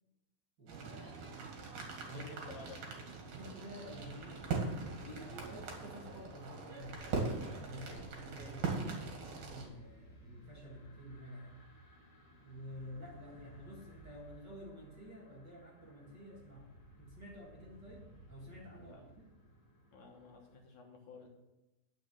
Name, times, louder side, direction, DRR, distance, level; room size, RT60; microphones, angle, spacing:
voice 1, 0.6-1.3 2.1-2.3 3.3-4.4 4.7-7.0 7.6-11.6 12.4-19.3, equal, 40° right, -3 dB, 2.0 m, -51 dB
sound 1, 0.7-9.7, right 4 dB, 60° right, 3.5 m, -41 dB
voice 2, 2.1-2.8 18.7-19.0 19.9-21.3, left 4 dB, 60° left, 1 dB, 2.5 m, -53 dB
sound 2, 3.6-20.6, equal, 30° left, 2.7 m, -58 dB
10.5 x 6.4 x 7.7 m, 0.98 s
omnidirectional pair, 4.1 m